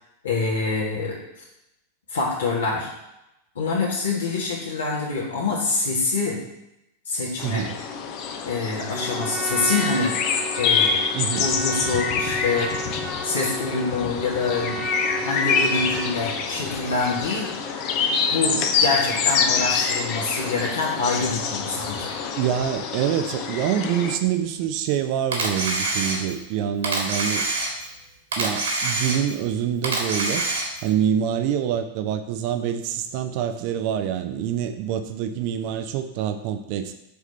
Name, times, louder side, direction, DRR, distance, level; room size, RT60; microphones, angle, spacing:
voice 1, 0.2-1.2 2.1-2.9 3.6-6.4 7.1-7.7 8.5-10.1 10.6-11.0 11.3-12.7 13.2-14.8 15.1-17.5 18.3-22.2, left 3 dB, 65° left, -4 dB, 2.3 m, -25 dB
sound 1, 7.4-24.2, left 6 dB, 40° left, 0.9 m, -26 dB
voice 2, 7.4-7.7 11.1-11.5 22.4-27.5 28.4-30.4 30.8-36.9, right 9 dB, 45° right, 9 dB, 0.7 m, -26 dB
Trumpet, 8.9-16.2, right 2 dB, 5° right, 1.1 m, -33 dB
Camera, 25.3-26.5 26.8-28.0 28.3-29.5 29.8-30.9, right 3 dB, 65° right, 2.0 m, -26 dB
6.9 x 4.9 x 5.6 m, 0.86 s
figure-of-eight pair, 90°, 0 cm